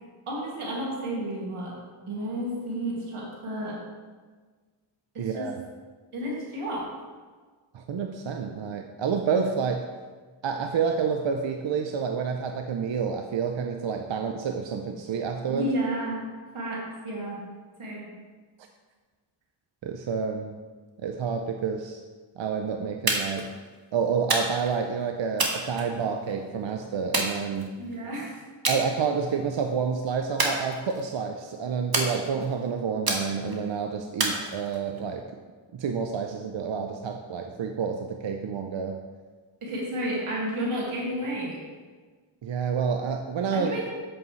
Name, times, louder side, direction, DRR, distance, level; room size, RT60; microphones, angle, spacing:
voice 1, 0.3-1.8 2.1-3.8 5.1-5.5 6.1-6.9 15.5-16.2 16.5-17.4 17.8-18.1 27.8-28.4 39.6-41.6 43.5-43.9, right 1 dB, 90° right, -4 dB, 2.3 m, -31 dB
voice 2, 5.2-5.6 7.7-9.8 10.4-15.7 19.8-20.6 21.0-22.0 22.4-23.5 23.9-27.7 28.7-35.3 35.7-39.0 42.4-43.7, right 6 dB, 65° right, 4 dB, 0.6 m, -29 dB
sound 1, 23.1-23.5 24.3-24.8 25.4-26.3 27.1-27.9 28.6-28.8 29.2-29.6 30.4-31.2 31.9-32.6 33.1-33.6 34.2-35.0, right 2 dB, 45° right, 1.4 m, -29 dB
8.0 x 7.6 x 3.2 m, 1.4 s
cardioid pair, 65°, 49 cm